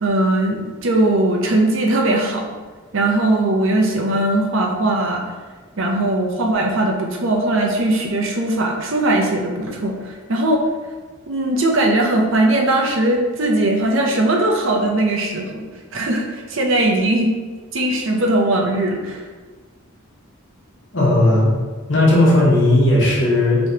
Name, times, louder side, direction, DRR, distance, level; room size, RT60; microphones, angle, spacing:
voice 1, 0.0-2.4 2.9-5.2 5.8-10.6 11.3-15.6 15.9-17.3 17.7-19.2, right 1 dB, 65° right, 1 dB, 0.6 m, -19 dB
voice 2, 20.9-21.5 21.9-23.7, left 1 dB, 60° left, -5 dB, 1.2 m, -15 dB
4.8 x 3.1 x 2.8 m, 1.4 s
head